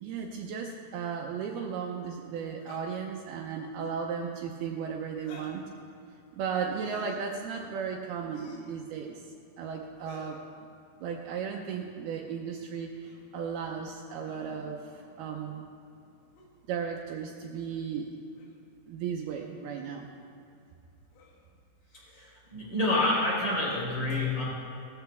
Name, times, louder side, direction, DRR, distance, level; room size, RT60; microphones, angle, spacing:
voice 1, 0.0-5.6 6.3-9.2 9.6-10.4 11.0-15.7 16.7-18.1 18.9-20.1, right 6 dB, 80° right, 0 dB, 2.6 m, -35 dB
sound 1, 2.6-2.9 3.7-4.0 5.2-5.6 6.7-7.2 8.3-8.7 10.0-10.4 11.7-11.9 13.0-13.3 14.2-14.7 16.4-16.5 17.5-17.7 18.4-18.6 19.4-19.6 21.1-21.5, left 4 dB, 75° left, 3.5 m, -51 dB
voice 2, 22.1-24.4, left 2 dB, 30° left, -5 dB, 4.0 m, -28 dB
18.0 x 14.0 x 3.5 m, 2.6 s
omnidirectional pair, 4.9 m